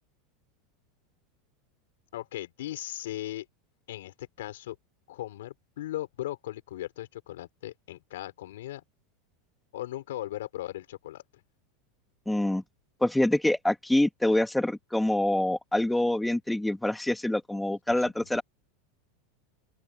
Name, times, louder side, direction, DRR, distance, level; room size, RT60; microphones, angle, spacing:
voice 1, 2.1-3.5 3.9-4.8 5.1-8.8 9.7-11.2 17.9-18.3, left 14 dB, 85° left, 5.7 m, -38 dB
voice 2, 12.3-12.6 13.0-18.4, left 1 dB, 5° left, 1.6 m, -26 dB
open air
supercardioid pair, 135°, 0 cm